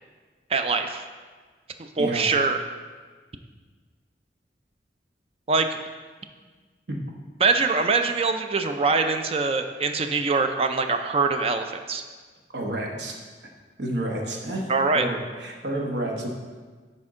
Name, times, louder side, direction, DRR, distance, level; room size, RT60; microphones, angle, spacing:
voice 1, 0.5-1.0 2.0-2.6 5.5-5.8 7.4-12.0 14.7-15.1, right 4 dB, 35° right, 6 dB, 0.4 m, -23 dB
voice 2, 12.5-13.2 13.8-16.3, right 1 dB, 75° right, 0 dB, 1.1 m, -30 dB
10.5 x 4.3 x 3.7 m, 1.4 s
head